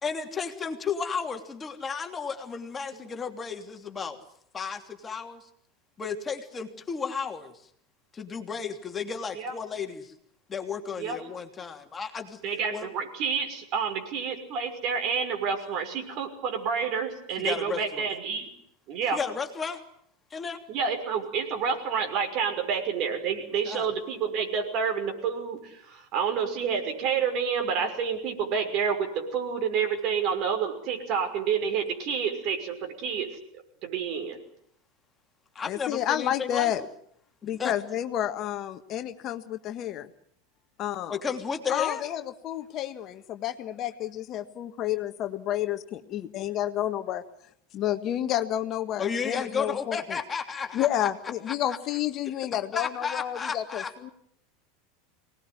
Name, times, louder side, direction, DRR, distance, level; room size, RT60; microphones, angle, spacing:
voice 1, 0.0-4.2 4.5-5.4 6.0-7.5 8.1-10.1 10.5-12.4 12.7-12.9 17.4-18.1 19.1-19.8 20.3-20.6 23.7-23.9 35.5-36.7 37.6-37.7 41.1-42.0 49.0-51.1 51.5-51.8 52.7-54.1, left 6 dB, 25° left, 4 dB, 3.2 m, -33 dB
voice 2, 12.4-18.5 18.9-19.2 20.7-33.3 33.8-34.4, right 6 dB, 50° right, 5 dB, 5.9 m, -29 dB
voice 3, 35.6-36.8 37.4-40.1 40.8-41.2 41.7-47.2 47.7-50.2 50.7-54.1, left 12 dB, 45° left, 8 dB, 1.6 m, -30 dB
24.5 x 19.5 x 9.7 m, 0.69 s
hypercardioid pair, 85°, 0 cm